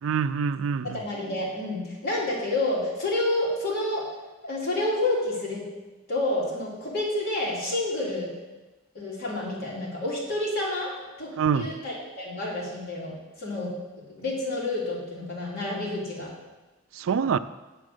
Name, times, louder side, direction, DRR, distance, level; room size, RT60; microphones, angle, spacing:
voice 1, 0.0-1.0 11.4-11.7 16.9-17.4, right 6 dB, 80° right, 14 dB, 0.4 m, -25 dB
voice 2, 0.9-4.1 4.4-5.6 6.1-8.3 8.9-10.9 11.2-13.7 14.2-16.3, left 2 dB, 50° left, -6 dB, 3.1 m, -29 dB
7.3 x 6.9 x 6.4 m, 1.2 s
head